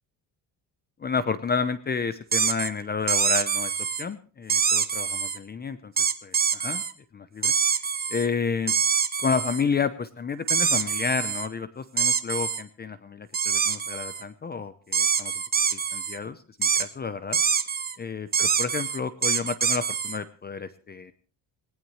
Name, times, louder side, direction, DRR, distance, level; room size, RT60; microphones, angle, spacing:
voice 1, 1.0-5.9 6.2-6.8 7.1-7.5 8.1-8.7 9.2-15.3 15.7-17.4 18.0-21.1, left 5 dB, 25° left, 13 dB, 0.7 m, -30 dB
sound 1, 2.3-2.7 3.1-4.0 4.5-5.4 6.0-6.9 7.4-8.3 8.7-9.6 10.5-11.5 12.0-12.6 13.3-14.2 14.9-16.2 16.6-16.9 17.3-17.9 18.3-20.2, right 6 dB, 25° right, 0.9 m, -25 dB
19.5 x 19.5 x 3.2 m, 0.39 s
cardioid pair, 150°, 39 cm